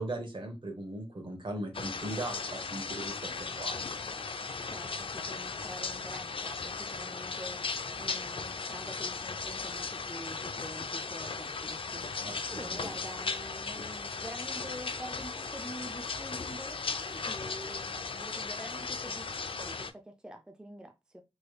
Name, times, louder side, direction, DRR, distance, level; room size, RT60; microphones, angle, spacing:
voice 1, 0.0-4.0 12.2-12.9, right 1 dB, 55° right, 1.1 m, -39 dB
sound 1, 1.7-19.9, left 4 dB, 60° left, 0.4 m, -37 dB
voice 2, 4.6-21.2, right 1 dB, 10° right, 0.4 m, -46 dB
3.2 x 3.1 x 2.3 m
wide cardioid pair, 65°, 10 cm